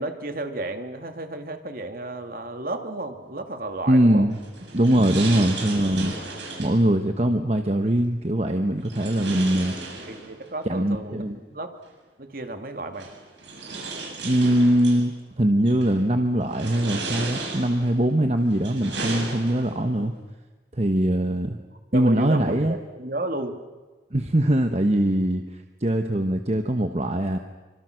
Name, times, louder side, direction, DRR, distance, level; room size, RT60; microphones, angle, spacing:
voice 1, 0.0-4.3 10.1-11.3 11.5-11.7 12.2-13.1 21.9-23.6, right 2 dB, 50° right, 6 dB, 2.2 m, -32 dB
voice 2, 3.9-4.4 4.7-6.1 6.6-9.7 10.6-11.4 14.2-20.1 20.7-21.6 21.9-22.8 24.1-27.4, right 1 dB, 35° right, 6 dB, 1.2 m, -22 dB
sound 1, 4.3-6.8 8.8-10.5 11.9-12.0 12.9-15.0 15.7-16.0 16.5-18.0 18.5-19.9, right 3 dB, 85° right, 7.5 m, -34 dB
27.0 x 25.0 x 6.4 m, 1.3 s
head